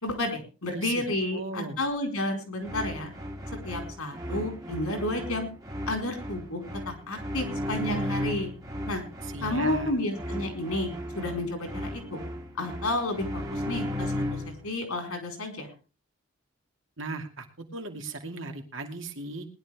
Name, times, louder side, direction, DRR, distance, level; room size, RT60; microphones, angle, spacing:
voice 1, 0.0-3.1 3.6-5.5 5.9-8.5 8.9-9.0 9.4-10.9 11.1-12.2 12.6-15.7, left 1 dB, 85° left, 4 dB, 4.6 m, -31 dB
voice 2, 0.7-1.8 9.2-9.9 17.0-19.5, right 3 dB, 60° right, 3 dB, 2.3 m, -37 dB
sound 1, 2.6-14.7, left 1 dB, 15° right, 1.7 m, -35 dB
20.0 x 11.0 x 3.5 m, 0.34 s
head